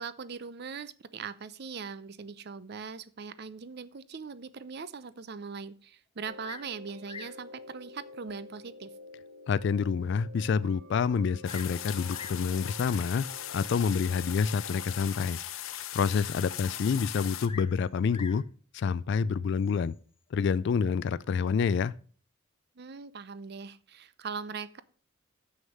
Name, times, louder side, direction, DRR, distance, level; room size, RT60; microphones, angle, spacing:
voice 1, 0.0-8.9 22.8-24.8, right 5 dB, 50° right, 0.6 m, -41 dB
sound 1, 6.2-15.0, left 2 dB, 85° right, 1.3 m, -50 dB
Bird vocalization bird call bird song, 6.4-6.8 7.0-7.4 8.3-8.4 9.0-9.1 9.6-9.7 9.9-10.0 11.1-11.8 12.1-12.5 13.5-13.8 17.4-18.5 19.5-20.0, left 5 dB, 25° left, 0.6 m, -46 dB
voice 2, 9.5-13.2 13.5-15.4 15.9-18.4 18.7-19.9 20.3-21.9, left 6 dB, 60° left, 0.3 m, -28 dB
sound 2, 11.4-17.5, left 11 dB, 80° left, 0.8 m, -39 dB
7.2 x 6.4 x 6.3 m
head